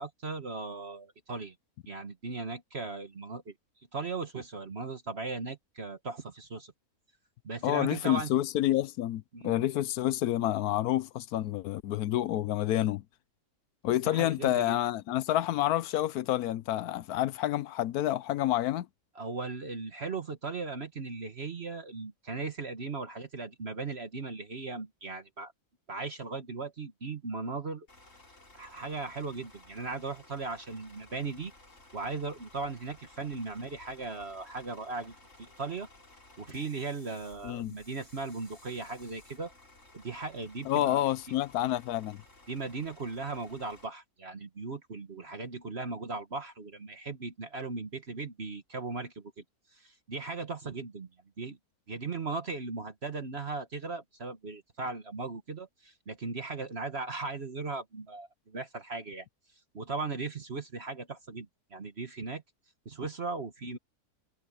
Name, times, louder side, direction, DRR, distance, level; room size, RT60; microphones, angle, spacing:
voice 1, 0.0-1.5 1.9-3.5 3.9-6.7 7.4-8.3 9.3-9.6 14.0-14.8 19.1-25.5 25.9-27.9 28.5-31.5 31.9-35.9 36.4-39.5 39.9-41.0 42.5-49.4 49.7-51.1 51.4-51.6 51.9-59.3 59.7-62.4 62.8-63.8, right 3 dB, 45° right, 1.6 m, -38 dB
voice 2, 7.6-13.0 13.8-18.9 37.4-37.7 40.7-42.2, left 13 dB, 80° left, 1.1 m, -28 dB
Bus / Idling, 27.9-43.9, left 2 dB, 50° left, 4.9 m, -57 dB
omnidirectional pair, 1.6 m